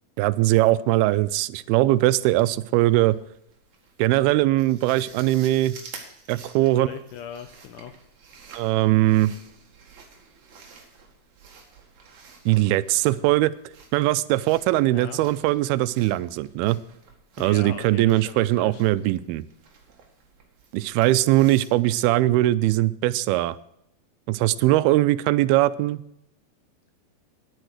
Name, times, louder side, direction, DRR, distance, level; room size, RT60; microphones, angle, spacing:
voice 1, 0.2-3.2 4.0-5.7 6.3-6.9 8.5-9.3 12.5-13.5 13.9-16.8 17.4-19.4 20.7-23.6 24.3-26.0, right 16 dB, 90° right, 17 dB, 2.5 m, -21 dB
sound 1, 1.9-21.7, right 5 dB, 55° right, 2.9 m, -50 dB
voice 2, 6.6-7.9 14.8-15.2 17.4-18.8, left 9 dB, 75° left, 8 dB, 1.9 m, -39 dB
10.5 x 9.1 x 6.4 m, 0.78 s
omnidirectional pair, 4.3 m